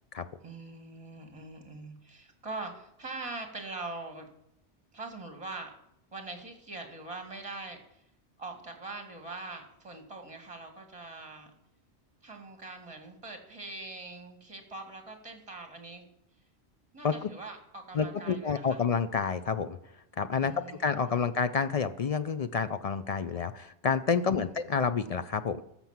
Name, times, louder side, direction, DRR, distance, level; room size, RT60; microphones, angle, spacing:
voice 1, 0.4-4.3 4.9-5.7 6.1-8.0 8.4-11.5 12.2-16.1 16.9-18.8 20.4-21.4 24.2-24.8, right 3 dB, 30° right, 4 dB, 2.1 m, -43 dB
voice 2, 17.9-19.8 20.2-25.6, left 6 dB, 55° left, 12 dB, 0.4 m, -29 dB
13.5 x 6.0 x 7.3 m, 0.77 s
omnidirectional pair, 1.2 m